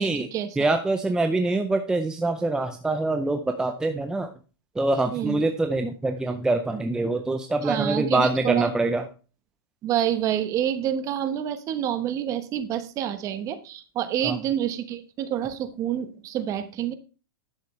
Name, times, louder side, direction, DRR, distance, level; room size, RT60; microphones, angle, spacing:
voice 1, 0.0-0.7 5.1-5.4 7.6-8.7 9.8-16.9, right 10 dB, 25° right, 11 dB, 1.0 m, -28 dB
voice 2, 0.6-4.3 4.8-9.0 14.2-14.4, right 2 dB, 5° right, 5 dB, 0.6 m, -25 dB
10.5 x 8.1 x 3.2 m, 0.34 s
supercardioid pair, 150°, 12 cm